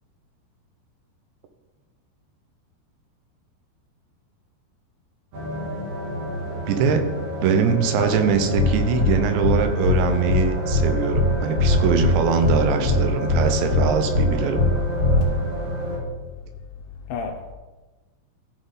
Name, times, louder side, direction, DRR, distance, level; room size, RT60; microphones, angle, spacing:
sound 1, 5.3-16.0, equal, 50° right, 2.8 m, -30 dB
voice 1, 6.7-7.1 7.4-14.7, right 6 dB, 80° right, 7 dB, 3.1 m, -22 dB
sound 2, 8.5-8.7 9.0-9.1 9.4-9.5 9.8-10.0 10.3-10.4 10.7-10.8 11.1-11.3 11.5-12.1 12.4-12.5 12.8-13.0 13.3-13.4 13.7-13.8 14.1-14.3 14.5-14.7 15.0-15.2, left 4 dB, 20° left, 1.1 m, -20 dB
voice 2, 17.1-17.5, left 4 dB, 80° left, 1 dB, 2.6 m, -30 dB
14.0 x 6.4 x 3.9 m, 1.2 s
omnidirectional pair, 5.1 m